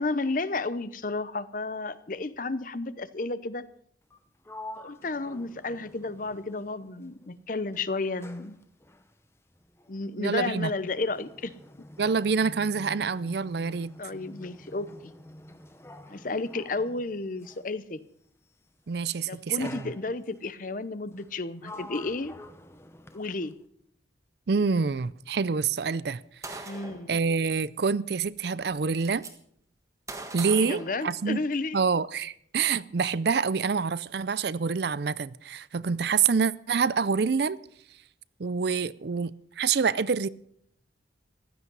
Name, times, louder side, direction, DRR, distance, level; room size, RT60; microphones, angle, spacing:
voice 1, 0.0-3.7 4.8-8.6 9.9-11.5 14.0-15.1 16.1-18.0 19.3-22.3 23.1-23.5 26.7-27.2 30.6-31.8, left 3 dB, 45° left, 0.8 m, -32 dB
Sliding door, 4.0-7.3 7.6-17.8 18.7-19.0 19.6-20.5 21.1-23.6, left 1 dB, 15° left, 0.9 m, -48 dB
voice 2, 10.2-10.7 12.0-13.9 18.9-19.9 24.5-26.2 26.5-26.7 27.1-29.2 30.3-31.4 31.7-37.6 38.4-40.3, right 5 dB, 60° right, 0.5 m, -27 dB
Gunshot gunfire, 26.4-27.1 28.2-28.3 28.6-29.3 30.1-31.6, right 2 dB, 15° right, 1.5 m, -41 dB
15.5 x 12.5 x 5.5 m
head